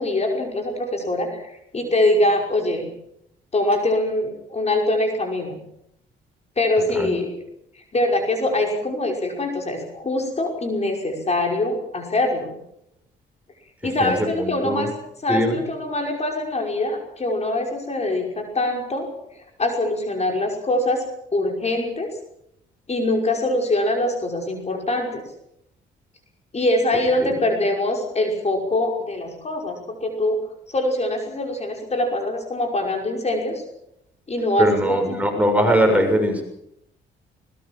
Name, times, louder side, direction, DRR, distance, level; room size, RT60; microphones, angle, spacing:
voice 1, 0.0-2.9 3.5-5.6 6.6-7.3 7.7-12.5 13.8-14.9 15.2-19.1 19.6-21.0 21.3-22.1 22.9-25.3 26.5-30.4 30.7-33.6 34.3-35.2, left 1 dB, 35° left, 2 dB, 5.7 m, -23 dB
voice 2, 14.0-14.9 15.3-15.6 27.2-27.3 34.6-36.4, equal, 5° right, 4 dB, 7.0 m, -21 dB
21.0 x 20.5 x 7.5 m, 0.76 s
cardioid pair, 90°, 20 cm